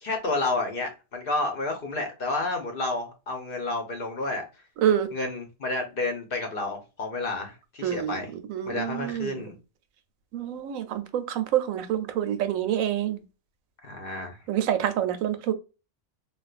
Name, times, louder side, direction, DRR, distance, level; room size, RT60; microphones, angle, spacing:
voice 1, 0.0-4.4 5.1-8.3 8.7-9.5 13.8-14.4, left 2 dB, 50° left, 0.8 m, -30 dB
voice 2, 7.8-8.2 8.5-9.4 10.3-13.2 14.5-15.5, right 10 dB, 85° right, 1.0 m, -27 dB
3.6 x 2.4 x 2.3 m
omnidirectional pair, 1.4 m